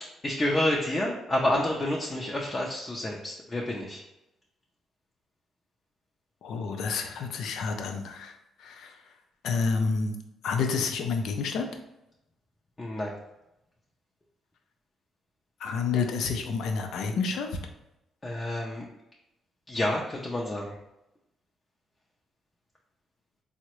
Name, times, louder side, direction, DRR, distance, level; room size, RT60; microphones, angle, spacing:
voice 1, 0.2-4.0 12.8-13.1 18.2-18.8 19.7-20.7, left 1 dB, 25° left, -3 dB, 0.5 m, -29 dB
voice 2, 6.4-9.0 9.4-10.1 10.4-11.7 15.6-17.5, left 5 dB, 75° left, 5 dB, 0.4 m, -29 dB
3.6 x 2.1 x 3.0 m, 0.91 s
cardioid pair, 80°, 0 cm